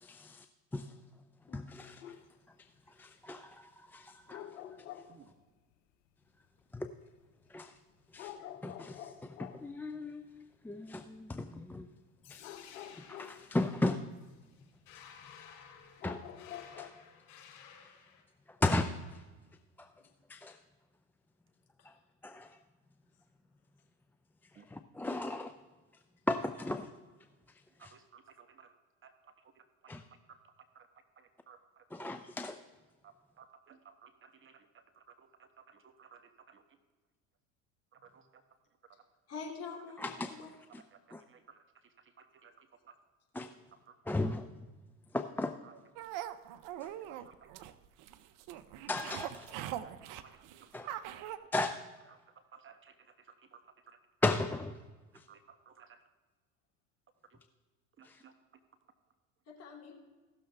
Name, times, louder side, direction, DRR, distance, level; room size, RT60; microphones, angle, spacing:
voice 1, 0.0-0.5 0.7-0.9 1.5-2.0 3.0-4.5 6.7-6.9 7.5-7.7 8.1-8.3 8.6-11.9 12.3-12.5 13.0-14.0 16.0-16.2 16.8-16.9 18.6-18.9 19.8-19.9 20.3-20.6 21.9-22.0 22.2-22.6 24.7-25.5 26.3-26.9 27.8-27.9 29.9-30.0 31.9-32.6 40.0-40.3 40.7-40.8 41.1-41.2 43.4-43.5 44.1-44.5 45.1-45.5 46.8-46.9 48.9-49.5 50.7-50.9 51.5-51.8 54.2-54.7 55.2-55.3 58.0-58.2, left 2 dB, 5° left, 7 dB, 0.3 m, -35 dB
sound 1, 1.8-2.3 4.3-5.2 7.4-7.5 8.2-9.7 12.4-14.1 14.5-14.9 15.2-15.3 15.9-16.9, left 11 dB, 85° left, 0.8 m, -48 dB
sound 2, 12.2-18.2, left 7 dB, 60° left, 3.2 m, -55 dB
voice 2, 27.8-28.7 29.0-29.9 30.3-30.4 30.7-30.9 31.2-32.0 33.0-36.6 37.9-38.4 40.9-42.9 43.7-44.0 45.6-45.8 47.3-47.4 49.8-50.4 50.8-51.0 51.2-51.8 52.1-54.0 55.3-56.0 57.3-57.4 58.0-58.6, right 6 dB, 35° right, 8 dB, 1.0 m, -59 dB
voice 3, 39.3-40.5 59.5-60.0, left 5 dB, 40° left, -1 dB, 3.0 m, -46 dB
sound 3, 45.9-51.4, right 12 dB, 60° right, 0.7 m, -42 dB
16.5 x 6.7 x 3.4 m, 1.3 s
hypercardioid pair, 80°, 37 cm